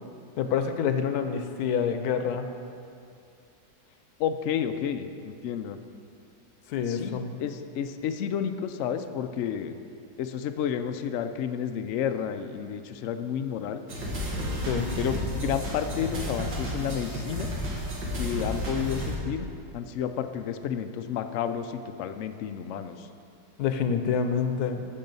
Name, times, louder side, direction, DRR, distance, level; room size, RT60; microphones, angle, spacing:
voice 1, 0.4-2.5 6.7-7.3 14.6-14.9 23.6-24.8, left 7 dB, 70° left, 8 dB, 1.1 m, -27 dB
voice 2, 4.2-5.8 6.9-9.8 10.2-13.8 15.0-17.5 18.2-19.5 19.7-23.1, left 8 dB, 85° left, 8 dB, 0.6 m, -31 dB
sound 1, 13.9-19.1, equal, 90° right, 2.4 m, -32 dB
14.0 x 5.5 x 5.4 m, 2.5 s
omnidirectional pair, 1.9 m